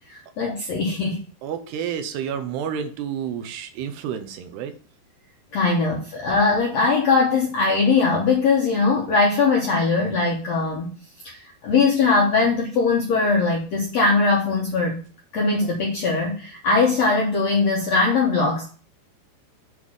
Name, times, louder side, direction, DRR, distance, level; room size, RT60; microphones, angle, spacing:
voice 1, 0.1-1.2 5.5-10.9 11.2-11.4 11.6-15.0 15.3-18.6, left 4 dB, 65° left, -1 dB, 1.7 m, -20 dB
voice 2, 1.4-4.7, right 8 dB, 80° right, 8 dB, 2.9 m, -30 dB
8.1 x 3.7 x 6.3 m, 0.39 s
omnidirectional pair, 4.8 m